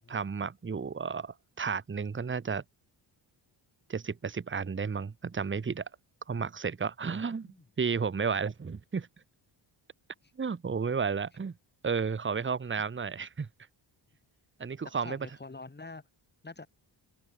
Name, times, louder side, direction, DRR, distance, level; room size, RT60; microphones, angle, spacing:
voice 1, 0.1-2.6 3.9-5.9 6.3-9.1 10.4-11.5 11.8-13.5 14.6-15.3, right 5 dB, 25° right, 1.2 m, -32 dB
voice 2, 14.8-16.1 16.4-16.7, left 3 dB, 20° left, 5.0 m, -45 dB
open air
cardioid pair, 95°, 48 cm